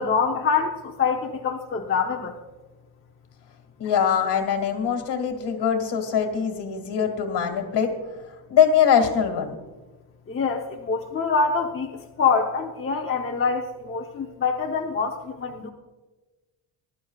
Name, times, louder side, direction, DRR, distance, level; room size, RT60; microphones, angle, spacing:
voice 1, 0.0-2.3 10.3-15.7, left 5 dB, 25° left, 1 dB, 0.9 m, -25 dB
voice 2, 3.8-7.9 8.5-9.5, left 8 dB, 60° left, 5 dB, 2.2 m, -22 dB
20.5 x 12.0 x 2.4 m, 1.2 s
cardioid pair, 130°, 47 cm